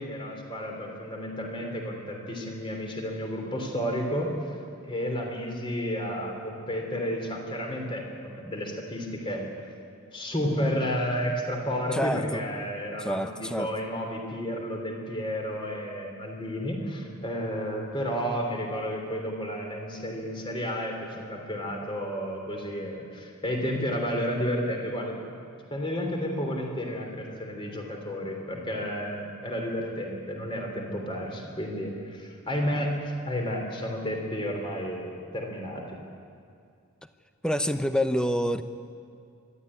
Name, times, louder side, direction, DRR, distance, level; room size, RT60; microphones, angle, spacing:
voice 1, 0.0-4.3 4.8-9.4 10.1-25.4 25.7-36.0, equal, 20° left, 2 dB, 3.3 m, -31 dB
voice 2, 11.9-12.4 13.0-13.7 37.4-38.6, equal, 5° left, 9 dB, 0.7 m, -27 dB
23.5 x 13.0 x 9.9 m, 2.4 s
head